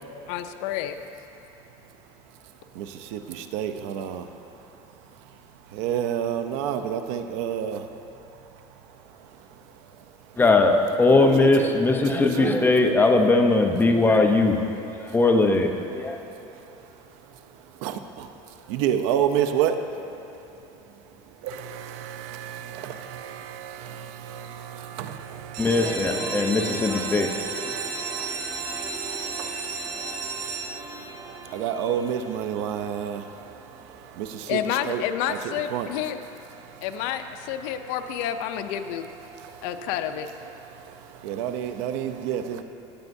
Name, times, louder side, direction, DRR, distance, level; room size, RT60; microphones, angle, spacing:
voice 1, 0.3-1.0 34.5-36.2 36.8-39.1 39.6-40.3, left 10 dB, 80° left, 8 dB, 0.6 m, -29 dB
voice 2, 2.7-4.3 5.7-7.9 9.1-9.5 9.8-10.4 11.1-11.7 12.1-12.6 15.0-15.1 16.0-16.7 17.5-19.8 21.4-26.6 27.7-34.6 34.8-35.4 35.7-35.9 36.6-36.8 39.3-39.7 40.7-42.6, right 9 dB, 85° right, 8 dB, 0.6 m, -31 dB
voice 3, 10.4-14.6 15.0-16.2 25.6-27.3 27.6-27.9, left 3 dB, 15° left, 3 dB, 0.7 m, -20 dB
sound 1, 25.5-31.1 31.8-32.3 32.7-32.8 33.0-33.1 33.5-33.6, right 5 dB, 55° right, 1.4 m, -33 dB
sound 2, 25.6-33.9, right 1 dB, 25° right, 1.7 m, -39 dB
16.5 x 9.2 x 2.7 m, 3.0 s
cardioid pair, 140°, 15 cm